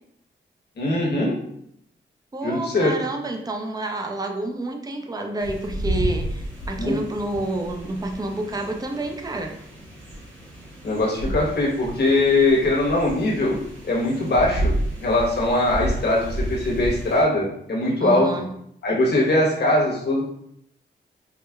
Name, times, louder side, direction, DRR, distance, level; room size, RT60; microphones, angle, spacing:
voice 1, 0.8-1.3 2.4-3.0 6.8-7.0 10.8-13.6 13.8-18.3 18.8-20.2, left 2 dB, 60° left, -3 dB, 1.1 m, -21 dB
voice 2, 2.3-9.5 11.3-11.4 18.0-18.5, right 2 dB, 20° right, 3 dB, 0.5 m, -29 dB
sound 1, 5.4-17.2, right 1 dB, 85° right, 0.9 m, -31 dB
4.7 x 2.2 x 2.3 m, 0.71 s
cardioid pair, 55°, 20 cm